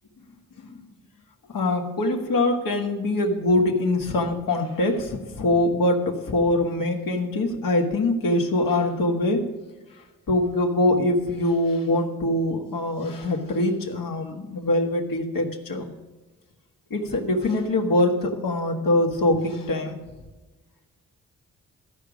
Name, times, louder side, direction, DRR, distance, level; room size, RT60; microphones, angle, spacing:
voice 1, 1.5-9.5 10.3-15.9 16.9-20.0, left 1 dB, 75° left, 2 dB, 1.6 m, -23 dB
13.5 x 5.0 x 7.3 m, 1.2 s
cardioid pair, 50°, 34 cm